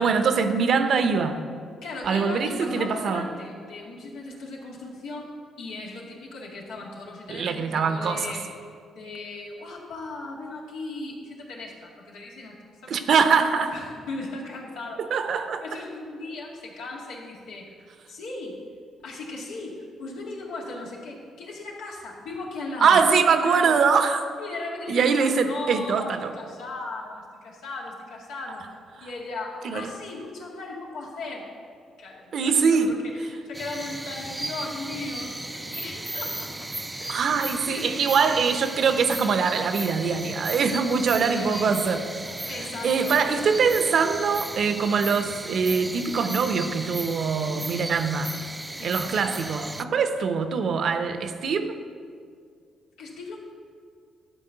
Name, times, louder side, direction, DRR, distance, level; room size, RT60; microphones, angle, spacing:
voice 1, 0.0-1.4 2.0-3.3 7.3-8.3 12.9-13.7 15.0-15.6 22.8-24.2 24.9-26.3 29.0-29.1 29.6-29.9 32.3-32.9 37.1-42.0 42.8-48.3 48.8-51.8, right 5 dB, 60° right, 8 dB, 0.8 m, -23 dB
voice 2, 1.8-8.5 8.9-13.0 13.6-15.1 15.6-17.7 18.1-18.6 19.0-23.0 23.4-23.8 24.4-28.7 29.0-31.5 32.0-36.7 37.0-37.9 41.1-41.8 42.5-43.8 48.8-48.9 53.0-53.4, left 2 dB, 90° left, -3 dB, 2.0 m, -37 dB
sound 1, 33.5-49.8, right 2 dB, 15° right, 0.4 m, -35 dB
12.0 x 4.3 x 8.0 m, 2.2 s
cardioid pair, 90°, 0 cm